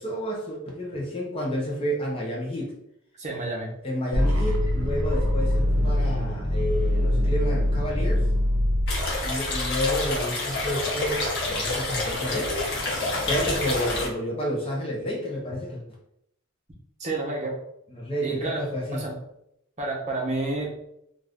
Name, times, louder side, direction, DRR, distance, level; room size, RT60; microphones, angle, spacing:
voice 1, 0.0-2.7 3.8-8.3 9.2-12.6 13.1-15.8 17.9-19.1, equal, 25° left, -3 dB, 0.6 m, -30 dB
voice 2, 3.2-3.7 17.0-17.6 18.2-19.1 19.8-20.7, right 2 dB, 30° right, -2 dB, 0.8 m, -30 dB
sound 1, 4.1-10.1, left 1 dB, 70° right, 0.7 m, -24 dB
sound 2, 8.9-14.1, left 2 dB, 55° left, 0.9 m, -28 dB
2.5 x 2.4 x 3.4 m, 0.75 s
head